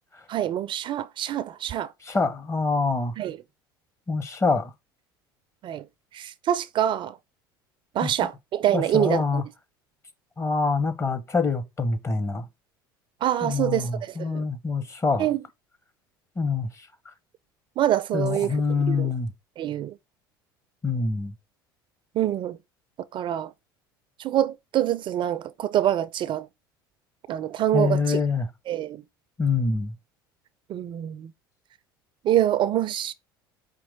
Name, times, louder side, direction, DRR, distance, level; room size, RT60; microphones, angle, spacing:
voice 1, 0.3-1.9 3.2-3.4 5.6-5.9 6.1-7.2 7.9-9.4 13.2-14.4 15.2-15.4 17.8-19.1 19.6-20.0 22.1-22.6 23.1-23.5 24.2-26.5 27.3-28.2 28.7-29.0 30.7-31.3 32.2-33.1, right 11 dB, 45° right, 0.4 m, -25 dB
voice 2, 2.0-3.1 4.1-4.7 8.0-8.1 8.7-9.4 10.4-12.5 13.4-15.3 16.4-16.7 18.1-19.3 20.8-21.3 27.7-28.5 29.4-29.9, left 4 dB, 25° left, 0.9 m, -25 dB
5.2 x 3.0 x 3.4 m
hypercardioid pair, 80°, 12 cm